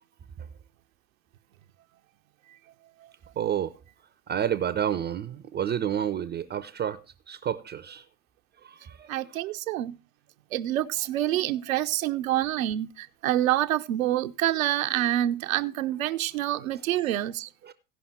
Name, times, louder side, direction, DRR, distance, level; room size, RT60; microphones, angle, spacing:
voice 1, 3.4-3.8 4.3-8.0 8.6-9.4 17.6-17.7, right 9 dB, 25° right, 0.6 m, -30 dB
voice 2, 9.0-10.0 10.5-17.5, right 13 dB, 65° right, 0.7 m, -27 dB
16.5 x 5.5 x 4.3 m
figure-of-eight pair, 70°, 45 cm